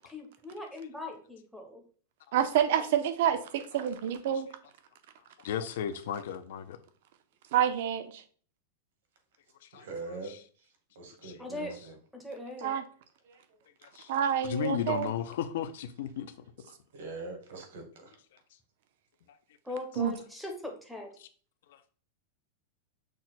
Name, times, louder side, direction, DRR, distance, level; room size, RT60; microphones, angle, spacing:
voice 1, 0.1-1.8 2.8-2.9 11.4-11.7 12.1-12.8 19.6-21.1, left 2 dB, ahead, 0.6 m, -40 dB
voice 2, 2.3-4.5 7.5-8.2 12.6-12.8 14.1-15.1 20.0-20.1, right 9 dB, 55° right, 0.5 m, -28 dB
voice 3, 5.4-6.8 9.7-9.8 11.2-11.3 13.8-14.1 14.4-16.3 21.7-21.8, left 9 dB, 65° left, 0.4 m, -34 dB
voice 4, 9.7-12.0 12.6-12.8 13.2-13.6 16.9-18.2, right 3 dB, 70° right, 1.3 m, -44 dB
6.1 x 2.1 x 4.1 m
supercardioid pair, 175°, 0 cm